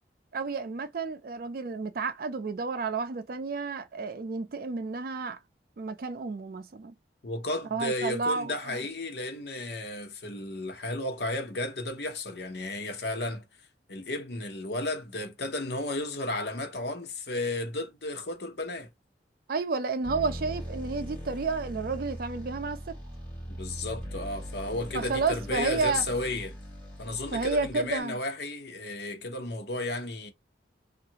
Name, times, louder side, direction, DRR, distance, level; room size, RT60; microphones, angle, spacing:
voice 1, 0.3-5.4 5.8-6.9 7.7-8.8 19.5-23.0 24.9-26.0 27.3-28.2, right 4 dB, 55° right, 0.4 m, -31 dB
voice 2, 7.2-13.5 13.9-18.9 23.5-26.6 27.0-30.3, left 2 dB, 65° left, 0.8 m, -33 dB
sound 1, 20.0-28.0, equal, 10° left, 1.5 m, -40 dB
2.7 x 2.4 x 2.8 m
head